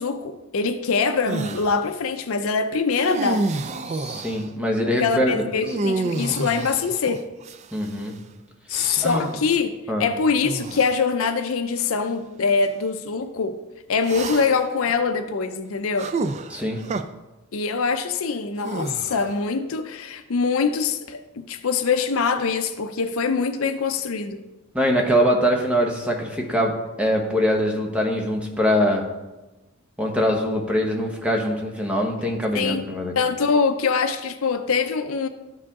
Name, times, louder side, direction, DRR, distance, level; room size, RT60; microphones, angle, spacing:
voice 1, 0.0-3.4 5.0-7.2 8.7-9.7 10.0-13.6 13.9-16.1 17.5-24.4 32.5-32.8 33.2-35.3, left 5 dB, 65° left, 8 dB, 0.5 m, -23 dB
sound 1, 1.3-1.7 2.9-4.5 5.6-7.9 8.7-9.3 10.4-10.9 11.8-11.9 14.0-14.7 16.0-17.0 18.6-19.4, right 3 dB, 30° right, 0.3 m, -29 dB
voice 2, 3.8-5.6 7.7-8.1 9.0-9.3 9.9-10.0 16.5-16.8 24.7-29.0 30.0-33.1, equal, 5° right, 0 dB, 1.0 m, -23 dB
13.0 x 4.9 x 3.6 m, 1.1 s
head